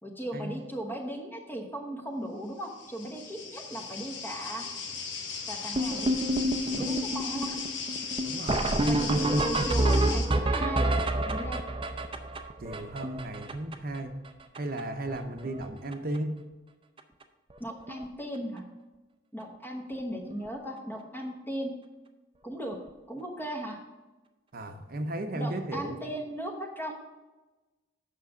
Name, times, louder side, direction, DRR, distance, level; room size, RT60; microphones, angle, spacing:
voice 1, 0.0-4.6 5.5-6.1 6.7-7.6 8.8-10.9 11.2-11.6 17.6-18.6 19.3-21.7 22.4-22.8 23.1-23.8 25.3-26.9, right 1 dB, 10° left, 1 dB, 1.1 m, -37 dB
sound 1, 2.6-10.3, left 5 dB, 85° left, 1.2 m, -37 dB
sound 2, 5.7-14.0 14.2-14.3 14.5-14.8 15.1-15.6 15.9-16.2 17.0-17.1 17.5-17.6 17.9-18.0 20.3-20.4 22.7-22.8, right 1 dB, 30° right, 0.6 m, -28 dB
voice 2, 8.2-9.6 12.6-14.1 14.5-16.4 24.5-26.0, right 1 dB, 55° right, 6 dB, 0.9 m, -35 dB
8.3 x 6.2 x 5.0 m, 1.1 s
head